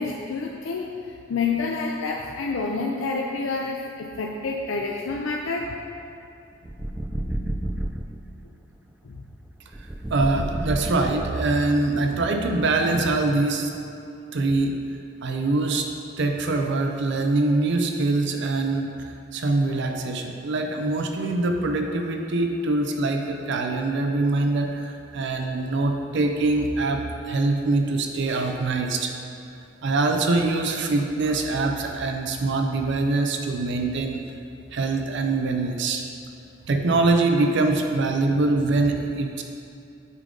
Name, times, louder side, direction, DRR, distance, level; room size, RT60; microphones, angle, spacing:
voice 1, 0.0-5.7 9.0-9.2, left 4 dB, 80° left, 0 dB, 0.5 m, -28 dB
sound 1, 6.6-8.2 9.7-11.6, right 1 dB, 10° right, 0.3 m, -30 dB
voice 2, 10.1-13.7 14.3-14.8 15.2-15.9 16.2-29.2 29.8-34.2 34.7-36.1 36.7-39.4, right 2 dB, 65° right, 4 dB, 0.5 m, -24 dB
8.2 x 3.7 x 5.2 m, 2.6 s
head